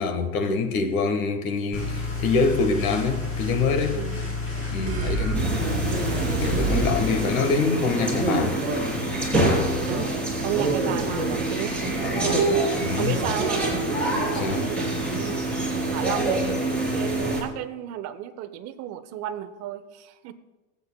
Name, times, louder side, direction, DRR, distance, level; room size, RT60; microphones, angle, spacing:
voice 1, 0.0-4.0 4.7-5.4 6.4-8.6 12.8-13.2 14.3-14.7, left 4 dB, 75° left, 1.5 m, -25 dB
sound 1, 1.7-7.3, left 4 dB, 30° left, 3.0 m, -30 dB
voice 2, 3.9-4.4 4.8-5.3 9.9-12.5 13.0-13.7 14.0-14.9 15.3-16.5 16.9-20.3, right 11 dB, 35° right, 0.7 m, -33 dB
sound 2, 4.8-7.0, right 6 dB, 20° right, 3.4 m, -29 dB
sound 3, 5.3-17.4, right 2 dB, 5° left, 3.5 m, -25 dB
22.5 x 8.1 x 2.2 m
supercardioid pair, 140°, 42 cm